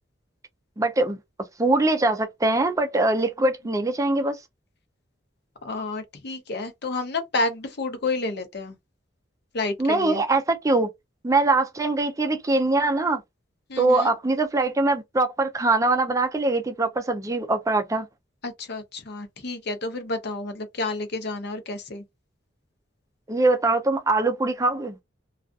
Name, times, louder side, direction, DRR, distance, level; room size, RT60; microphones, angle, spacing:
voice 1, 0.8-1.2 1.6-4.4 9.8-10.9 11.2-13.2 13.8-18.1 23.3-24.9, right 2 dB, 15° right, 0.4 m, -22 dB
voice 2, 5.6-8.8 9.5-10.2 13.7-14.1 18.4-22.0, left 2 dB, 60° left, 0.7 m, -30 dB
2.4 x 2.3 x 2.4 m
head